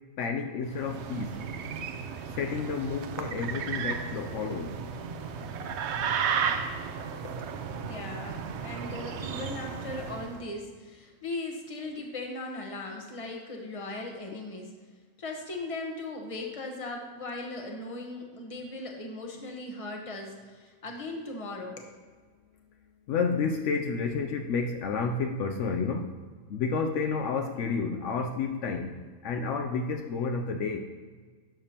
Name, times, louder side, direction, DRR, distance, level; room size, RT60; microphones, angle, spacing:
voice 1, 0.2-1.4 2.3-4.8 23.1-26.2 26.5-30.8, left 5 dB, 75° left, 4 dB, 0.9 m, -30 dB
sound 1, 0.7-10.4, right 6 dB, 65° right, 0.8 m, -34 dB
voice 2, 7.8-14.7 15.2-21.9, left 2 dB, 30° left, 2 dB, 1.0 m, -38 dB
12.0 x 6.8 x 2.9 m, 1.5 s
omnidirectional pair, 1.3 m